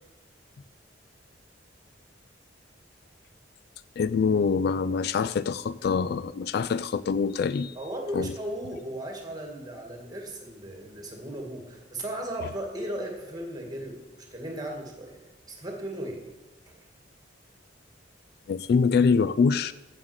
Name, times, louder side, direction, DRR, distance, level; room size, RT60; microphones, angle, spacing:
voice 1, 4.0-7.8 8.1-8.3 18.5-19.7, left 5 dB, 55° left, 16 dB, 0.3 m, -24 dB
voice 2, 7.8-14.0 14.3-15.2 15.5-16.2 16.7-16.8, right 1 dB, 20° right, 2 dB, 2.0 m, -36 dB
7.5 x 7.4 x 8.0 m, 1.1 s
head